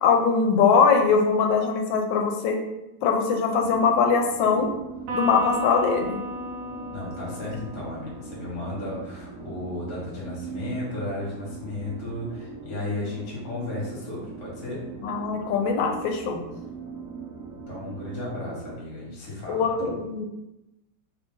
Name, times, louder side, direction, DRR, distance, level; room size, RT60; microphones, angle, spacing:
voice 1, 0.0-2.6 3.0-4.7 5.1-6.2 15.0-16.5 19.5-20.3, left 5 dB, 80° left, 3 dB, 1.3 m, -22 dB
sound 1, 3.6-18.7, right 5 dB, 85° right, 0.7 m, -41 dB
Electric guitar, 5.1-8.6, equal, 60° right, 1.1 m, -34 dB
voice 2, 6.9-14.9 17.7-19.6, left 2 dB, 45° left, -6 dB, 1.3 m, -34 dB
3.2 x 2.5 x 3.6 m, 0.95 s
omnidirectional pair, 2.0 m